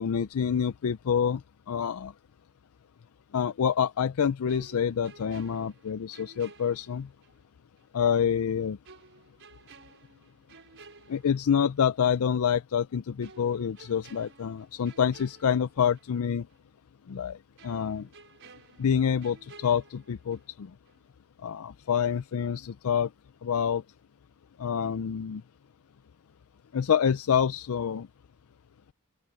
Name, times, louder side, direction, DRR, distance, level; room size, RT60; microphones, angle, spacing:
voice 1, 0.0-1.4 1.7-2.1 3.3-7.1 7.9-8.8 11.1-16.5 17.1-18.1 18.8-20.7 21.4-23.1 23.4-23.8 24.6-25.4 26.7-28.1, left 7 dB, 70° left, 0.4 m, -27 dB
sound 1, 4.5-7.4 7.8-7.9 8.9-11.8 12.1-12.3 13.2-16.2 16.5-16.6 17.6-20.6 20.9-21.1, right 4 dB, 60° right, 5.5 m, -54 dB
open air
head